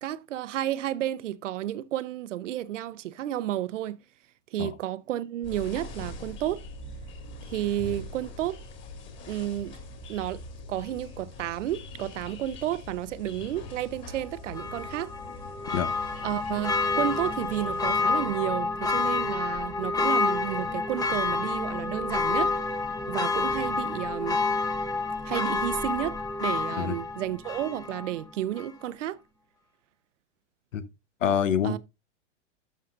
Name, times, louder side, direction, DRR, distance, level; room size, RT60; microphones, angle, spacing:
voice 1, 0.0-4.0 4.5-6.6 7.5-8.6 9.3-9.8 10.1-10.4 10.7-15.1 16.2-22.5 23.1-24.4 25.2-29.2 31.6-31.8, right 12 dB, 75° right, 0.8 m, -32 dB
sound 1, 5.4-18.0, left 2 dB, 30° left, 2.4 m, -43 dB
Church bell, 14.5-28.2 28.6-28.7, left 3 dB, 10° left, 0.9 m, -29 dB
voice 2, 31.2-31.8, left 8 dB, 90° left, 1.1 m, -26 dB
12.0 x 5.7 x 2.5 m
hypercardioid pair, 125°, 37 cm